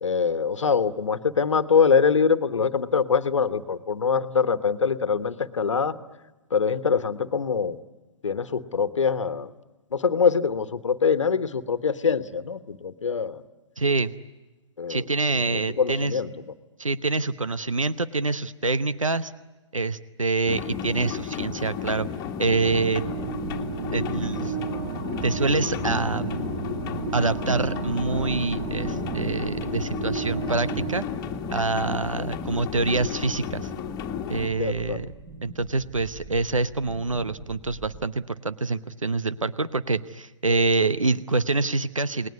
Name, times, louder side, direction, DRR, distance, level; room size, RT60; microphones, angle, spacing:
voice 1, 0.0-5.9 6.5-7.8 8.2-9.5 9.9-13.4 14.8-15.0 15.3-16.3 32.1-32.3 34.6-35.1, left 6 dB, 70° left, 13 dB, 1.4 m, -24 dB
voice 2, 13.8-14.1 14.9-16.2 16.8-19.3 19.7-22.1 22.4-23.0 23.9-24.6 25.2-26.5 27.1-31.0 31.5-33.7 34.3-35.1 35.4-42.3, right 3 dB, 90° right, 15 dB, 0.9 m, -26 dB
sound 1, 20.5-34.5, left 8 dB, 25° left, 1.9 m, -33 dB
sound 2, 22.7-31.0, right 6 dB, 40° right, 1.7 m, -33 dB
sound 3, 27.3-38.0, right 1 dB, 25° right, 4.9 m, -45 dB
29.0 x 20.0 x 9.7 m, 1.2 s
figure-of-eight pair, 125°, 16 cm